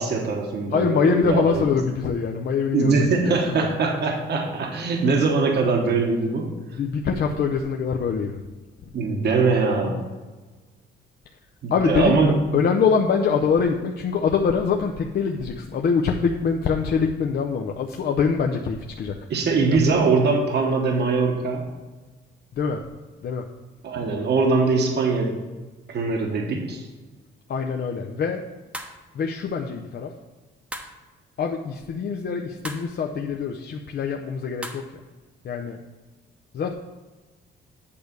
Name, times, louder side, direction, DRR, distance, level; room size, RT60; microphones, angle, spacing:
voice 1, 0.0-1.6 2.7-6.5 8.9-10.0 11.6-12.4 19.3-21.6 23.8-25.4 25.9-26.9, right 4 dB, 55° right, 2 dB, 1.1 m, -22 dB
voice 2, 0.7-3.0 3.2-3.7 6.7-8.4 11.7-12.2 12.5-19.1 19.6-20.1 22.5-22.9 23.2-23.5 27.5-28.5 29.1-30.2 31.4-34.9 35.4-35.8 36.5-36.7, left 5 dB, 55° left, 2 dB, 0.6 m, -24 dB
sound 1, 28.7-29.1 30.7-31.0 32.6-32.9 34.6-34.9, right 1 dB, 5° right, 0.8 m, -36 dB
8.5 x 3.4 x 6.6 m, 1.3 s
cardioid pair, 90°, 20 cm